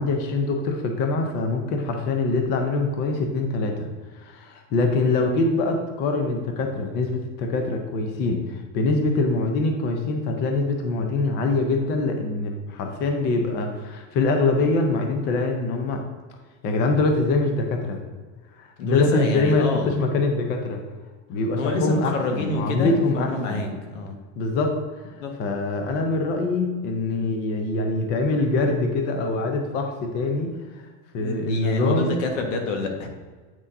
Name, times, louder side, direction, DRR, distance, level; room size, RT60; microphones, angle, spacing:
voice 1, 0.0-3.9 4.2-16.0 16.6-18.0 18.5-20.8 21.3-23.6 24.4-24.8 25.0-30.9 31.1-32.1, left 3 dB, 25° left, 3 dB, 0.6 m, -24 dB
voice 2, 18.8-19.9 21.5-24.2 25.2-25.3 31.2-33.1, left 3 dB, 90° left, 3 dB, 1.5 m, -28 dB
8.8 x 6.2 x 2.7 m, 1.4 s
supercardioid pair, 180°, 37 cm